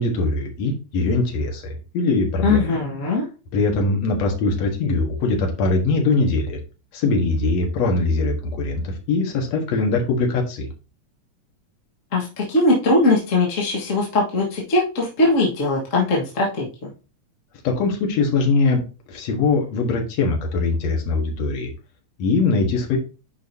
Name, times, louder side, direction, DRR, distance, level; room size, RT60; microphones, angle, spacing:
voice 1, 0.0-2.8 3.5-6.6 6.9-10.7 17.6-18.8 19.1-21.7 22.2-23.0, left 3 dB, 65° left, 2 dB, 2.5 m, -21 dB
voice 2, 2.4-3.2 12.1-16.9, left 2 dB, 35° left, -2 dB, 1.3 m, -20 dB
9.0 x 5.1 x 2.7 m, 0.32 s
omnidirectional pair, 3.3 m